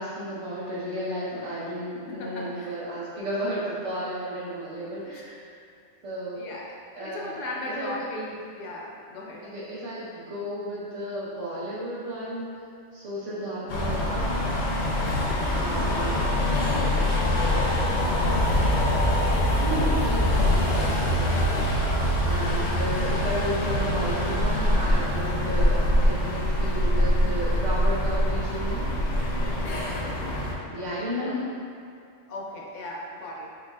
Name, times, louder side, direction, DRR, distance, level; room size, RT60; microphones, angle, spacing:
voice 1, 0.0-5.5 6.0-6.5 6.9-7.4 7.6-8.1 9.4-12.6 12.9-14.4 15.5-16.3 18.4-18.6 19.6-28.9 30.7-31.5, equal, 85° right, -9 dB, 1.4 m, -33 dB
voice 2, 2.1-2.8 5.0-5.4 6.3-6.7 7.0-9.5 15.9-16.3 16.6-18.3 30.8-31.4 32.3-33.5, left 2 dB, 85° left, -2 dB, 1.0 m, -38 dB
sound 1, 13.7-30.5, left 1 dB, 55° left, 0.5 m, -24 dB
4.0 x 3.1 x 2.3 m, 2.4 s
omnidirectional pair, 1.2 m